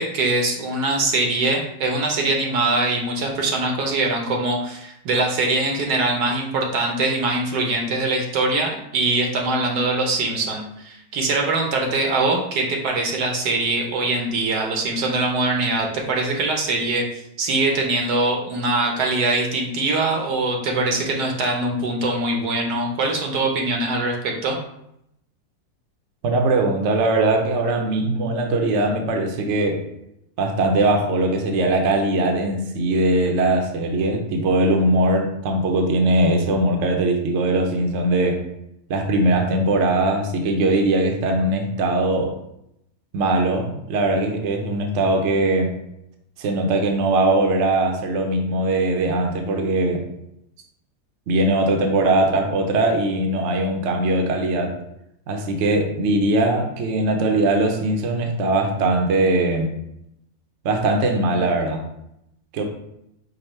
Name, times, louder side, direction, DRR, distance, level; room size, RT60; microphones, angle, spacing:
voice 1, 0.0-24.6, right 2 dB, 80° right, 1 dB, 1.4 m, -22 dB
voice 2, 26.2-29.9 30.4-38.4 38.9-42.4 43.1-45.7 46.4-50.0 51.3-54.8 55.3-59.7 60.6-61.9 62.5-62.6, right 2 dB, 60° right, 3 dB, 0.8 m, -20 dB
5.1 x 2.2 x 4.3 m, 0.79 s
omnidirectional pair, 1.7 m